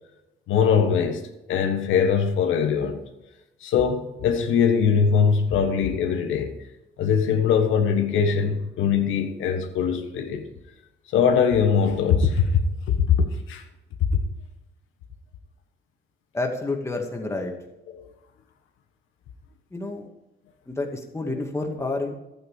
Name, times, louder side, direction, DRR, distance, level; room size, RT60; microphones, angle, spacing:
voice 1, 0.5-1.2 1.5-3.0 3.6-6.6 7.0-10.5 11.1-12.5 12.9-13.6 17.9-18.0, left 6 dB, 85° left, 1.4 m, -21 dB
voice 2, 16.3-17.5 19.7-20.1 20.7-22.1, left 2 dB, 15° left, 2.2 m, -29 dB
12.0 x 8.9 x 5.0 m
cardioid pair, 90°, 20 cm